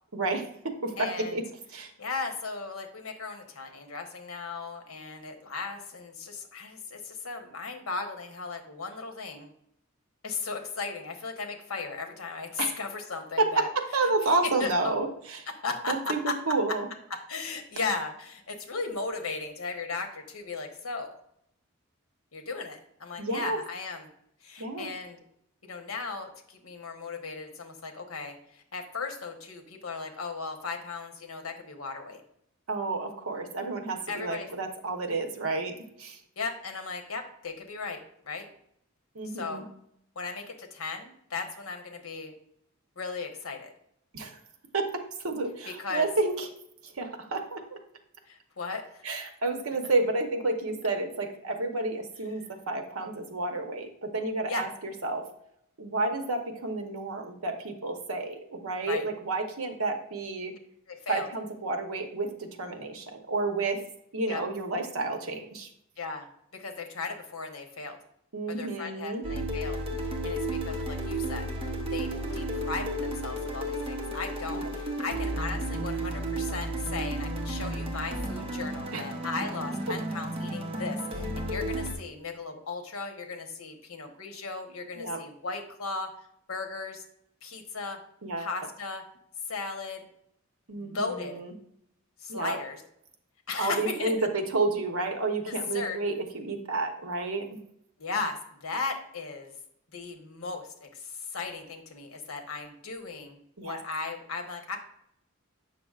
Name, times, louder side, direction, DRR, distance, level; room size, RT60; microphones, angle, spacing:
voice 1, 0.1-1.4 1.7-1.9 12.6-12.8 13.4-15.1 15.9-16.9 23.2-23.6 24.6-24.9 32.7-36.2 39.1-39.6 44.1-44.3 44.7-44.9 45.2-46.5 46.8-47.8 49.0-55.3 55.8-60.5 61.1-63.8 64.1-65.7 68.3-69.2 74.5-74.7 78.9-79.0 85.0-85.2 88.2-88.5 90.7-91.5 92.3-92.6 93.6-97.6 103.6-103.8, right 3 dB, 75° right, 5 dB, 0.9 m, -30 dB
voice 2, 1.0-1.4 2.0-9.5 10.2-13.7 14.2-15.0 15.6-16.4 17.3-21.1 22.3-24.1 24.4-25.2 25.6-32.2 34.1-34.5 36.4-38.5 39.3-39.6 40.1-42.3 43.0-43.7 45.6-46.1 48.3-49.0 54.5-54.6 58.8-59.0 60.9-61.3 64.3-64.4 66.0-66.3 66.5-68.0 68.5-69.8 70.2-71.5 71.9-86.1 86.5-87.0 87.4-88.0 88.4-89.0 89.5-90.1 90.7-91.4 92.2-92.8 93.5-94.1 95.4-96.0 98.0-99.5 99.9-104.8, left 4 dB, 70° left, 5 dB, 1.0 m, -36 dB
sound 1, 69.2-81.9, right 1 dB, 25° right, 0.9 m, -33 dB
7.8 x 5.9 x 2.4 m, 0.73 s
head